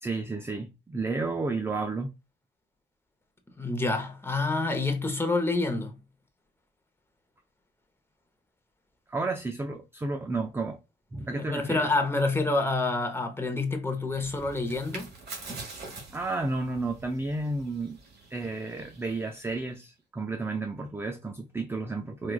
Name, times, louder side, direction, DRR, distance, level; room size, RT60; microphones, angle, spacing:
voice 1, 0.0-2.1 9.1-10.8 11.1-11.9 16.1-18.0 18.3-22.3, right 3 dB, 10° right, 0.3 m, -32 dB
voice 2, 3.6-5.9 11.3-15.1, left 3 dB, 10° left, 0.8 m, -28 dB
sound 1, 14.1-19.8, right 3 dB, 55° right, 1.5 m, -45 dB
4.5 x 2.3 x 2.2 m
cardioid pair, 90°, 20 cm